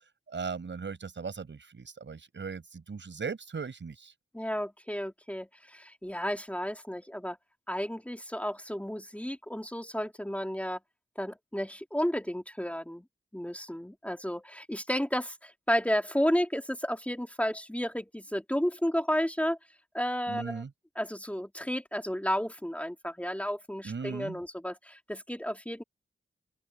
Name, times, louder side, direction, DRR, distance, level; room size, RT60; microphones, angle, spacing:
voice 1, 0.3-4.1 20.3-20.7 23.8-24.4, right 5 dB, 70° right, 5.8 m, -38 dB
voice 2, 4.3-7.4 7.7-10.8 11.2-13.0 13.3-19.6 19.9-20.6 21.0-25.8, equal, 5° left, 3.1 m, -32 dB
open air
cardioid pair, 55°, 20 cm